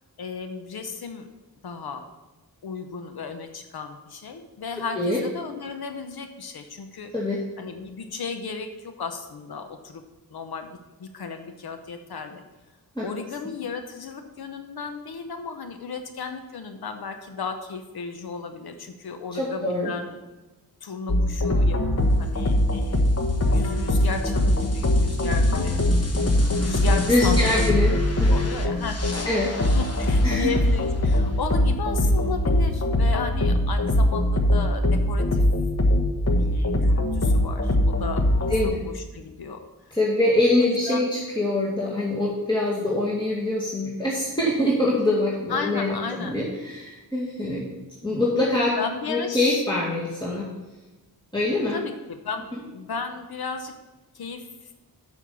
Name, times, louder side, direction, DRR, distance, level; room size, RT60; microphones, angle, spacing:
voice 1, 0.2-1.3 1.6-2.1 2.6-7.1 7.6-10.0 10.3-12.4 13.0-20.2 20.8-27.7 28.3-29.4 29.7-35.4 36.4-40.0 40.6-41.1 45.5-46.4 48.8-49.6 51.7-53.7 54.1-54.5, left 5 dB, 75° left, 7 dB, 0.9 m, -34 dB
voice 2, 19.4-19.9 27.1-27.9 28.2-28.3 29.2-29.5 30.2-30.5 38.5-38.8 39.9-47.7 48.0-48.8 49.1-50.5 51.3-51.8, left 1 dB, 10° left, -6 dB, 2.0 m, -24 dB
sound 1, 21.1-38.7, left 1 dB, 40° left, 1.2 m, -22 dB
7.5 x 5.7 x 6.9 m, 1.1 s
cardioid pair, 60°, 38 cm